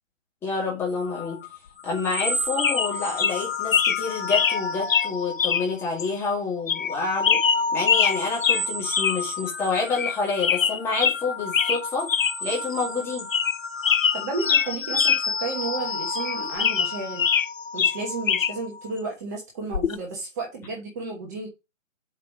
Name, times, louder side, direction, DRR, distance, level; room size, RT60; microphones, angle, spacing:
voice 1, 0.4-1.4 1.8-7.4 7.7-12.1 12.4-13.3, left 4 dB, 5° left, 2.0 m, -28 dB
sound 1, 1.0-6.2 6.6-18.9, left 3 dB, 55° left, 1.5 m, -31 dB
sound 2, 2.1-2.3 2.6-2.9 3.2-3.3 3.7-4.0 4.3-4.6 4.9-5.1 5.4-5.6 6.0-6.1 6.7-6.9 7.2-8.2 8.4-8.6 8.9-9.2 9.5-9.6 9.9-10.1 10.4-11.2 11.5-11.8 12.1-12.3 12.7-12.8 13.2-13.6 13.8-15.2 15.5-15.6 16.2-17.5 17.8-18.5 19.7-19.9, left 7 dB, 85° left, 0.7 m, -22 dB
voice 2, 14.1-17.2 17.7-21.5, right 3 dB, 15° right, 1.0 m, -32 dB
7.5 x 4.7 x 5.1 m
figure-of-eight pair, 150°, 38 cm